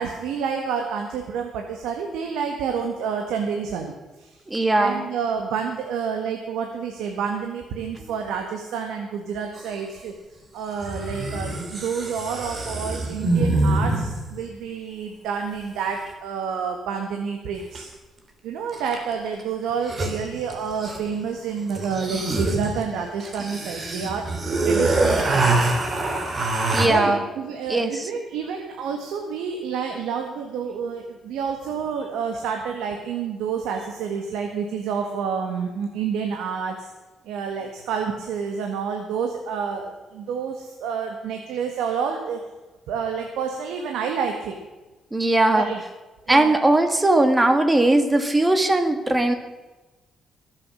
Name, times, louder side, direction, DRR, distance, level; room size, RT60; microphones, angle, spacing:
voice 1, 0.0-4.3 4.7-10.1 10.5-17.9 18.4-24.3 24.6-25.6 26.9-36.9 37.2-42.4 42.9-44.6 45.5-45.8 46.3-46.5, right 6 dB, 90° right, 3 dB, 1.6 m, -29 dB
voice 2, 4.5-5.0 26.7-27.2 27.7-28.1 45.1-45.7 46.3-49.3, right 2 dB, 15° right, 7 dB, 2.0 m, -19 dB
sound 1, 9.6-9.7 10.8-14.3 17.7-17.8 18.7-19.1 19.4-19.5 19.7-21.2 21.7-26.9, right 2 dB, 35° right, 3.0 m, -25 dB
21.5 x 7.5 x 6.3 m, 1.1 s
cardioid pair, 90°, 0 cm